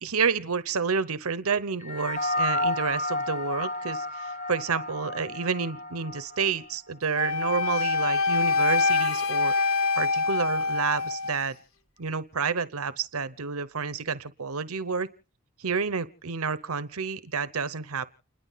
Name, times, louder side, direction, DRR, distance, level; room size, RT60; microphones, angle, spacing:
voice 1, 0.0-11.6 12.0-15.1 15.6-18.1, right 5 dB, 80° right, 14 dB, 0.9 m, -29 dB
sound 1, 1.8-6.5, left 2 dB, 35° left, 1.3 m, -31 dB
Wind instrument woodwind instrument, 7.1-11.4, left 4 dB, 70° left, 1.5 m, -25 dB
29.5 x 11.5 x 4.0 m, 0.41 s
head